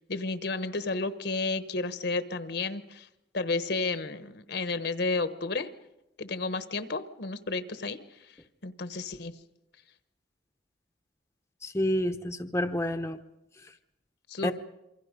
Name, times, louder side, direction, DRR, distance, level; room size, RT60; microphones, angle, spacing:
voice 1, 0.1-3.1 3.3-5.7 6.2-8.0 8.6-9.3 14.3-14.5, left 3 dB, 60° left, 11 dB, 1.1 m, -32 dB
voice 2, 11.6-13.2 14.4-14.5, left 1 dB, 15° left, 5 dB, 0.8 m, -29 dB
27.5 x 24.0 x 5.2 m, 0.91 s
head